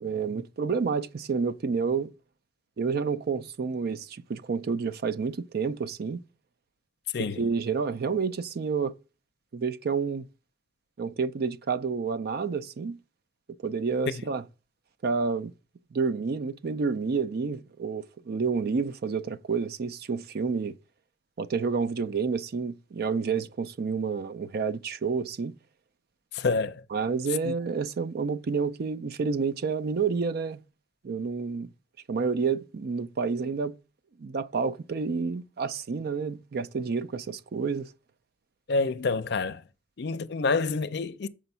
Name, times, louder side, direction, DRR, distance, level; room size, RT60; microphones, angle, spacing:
voice 1, 0.0-2.1 2.8-6.2 7.4-8.9 9.5-10.2 11.0-13.0 13.6-14.4 15.0-15.5 15.9-20.7 21.4-25.5 26.9-30.6 31.0-31.7 32.1-33.7 34.2-37.9, right 5 dB, 55° right, 0.4 m, -29 dB
voice 2, 26.3-26.8 27.4-27.5 38.7-39.6 40.0-41.3, left 4 dB, 65° left, 0.5 m, -27 dB
6.9 x 5.1 x 5.4 m
head